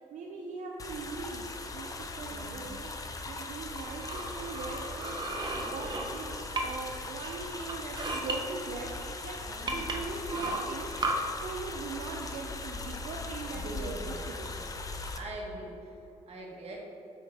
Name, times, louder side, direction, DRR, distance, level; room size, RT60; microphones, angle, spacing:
voice 1, 0.1-2.9 3.3-14.6, right 4 dB, 80° right, 0 dB, 0.5 m, -41 dB
sound 1, 0.8-15.2, left 3 dB, 30° left, 0.6 m, -40 dB
voice 2, 2.3-2.6 9.5-9.8 13.5-14.2 14.5-14.6 15.1-16.8, right 2 dB, 55° right, -2 dB, 1.5 m, -43 dB
sound 2, 3.7-6.9 7.2-8.4 9.0-9.1 9.7-11.1, right 3 dB, 35° right, 0.8 m, -35 dB
7.9 x 4.9 x 3.3 m, 2.9 s
cardioid pair, 105°, 12 cm